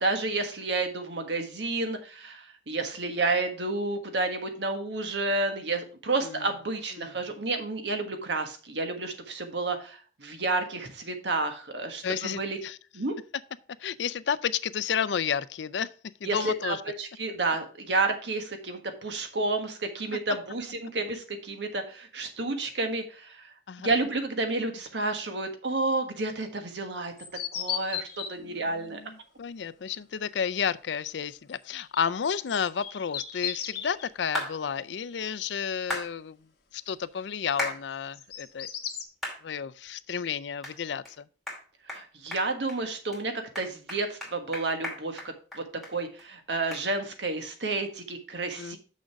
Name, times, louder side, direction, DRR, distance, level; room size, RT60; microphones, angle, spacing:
voice 1, 0.0-12.6 12.9-13.1 16.2-23.5 23.8-27.1 27.5-29.0 41.9-45.2 45.5-48.8, right 3 dB, 85° right, 1.5 m, -30 dB
voice 2, 12.0-12.8 13.8-15.9 16.2-16.8 23.7-23.9 28.4-36.4 36.7-38.7 39.4-41.3 48.6-48.8, left 7 dB, 90° left, 0.5 m, -31 dB
sound 1, 27.2-28.3 31.7-34.1 37.9-39.0, left 9 dB, 60° left, 1.5 m, -35 dB
sound 2, 34.3-34.5 35.9-36.1 37.6-37.8 38.3-38.4 39.2-39.4 39.9-40.0 40.6-40.7 41.0-41.1 41.5-41.6 41.9-42.0 42.3-42.8 43.1-43.2 43.5-45.9 46.2-46.3 46.7-46.8, left 1 dB, ahead, 2.5 m, -34 dB
6.4 x 6.3 x 4.7 m
head